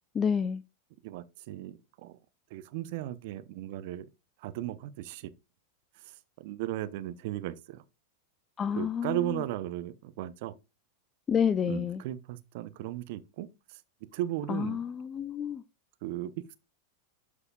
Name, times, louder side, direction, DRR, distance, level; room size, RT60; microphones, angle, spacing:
voice 1, 0.1-0.6 8.6-9.4 11.3-12.0 14.5-15.6, left 7 dB, 25° left, 0.5 m, -29 dB
voice 2, 1.0-2.2 2.5-4.1 4.4-5.3 5.9-7.8 8.8-10.5 11.7-13.8 14.1-14.8 16.0-16.6, right 14 dB, 55° right, 0.8 m, -36 dB
12.0 x 4.8 x 2.4 m
figure-of-eight pair, 90°, 0 cm